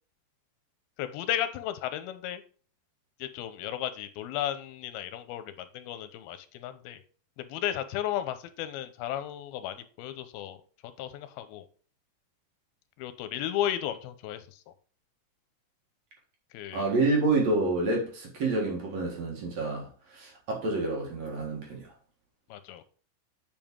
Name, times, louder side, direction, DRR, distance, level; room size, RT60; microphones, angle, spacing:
voice 1, 1.0-2.4 3.2-7.0 7.4-10.6 11.0-11.7 13.0-14.7 16.5-16.9 22.5-22.9, left 11 dB, 85° left, 2.6 m, -34 dB
voice 2, 16.7-21.9, right 3 dB, 55° right, 2.4 m, -28 dB
9.0 x 5.2 x 3.6 m
omnidirectional pair, 4.3 m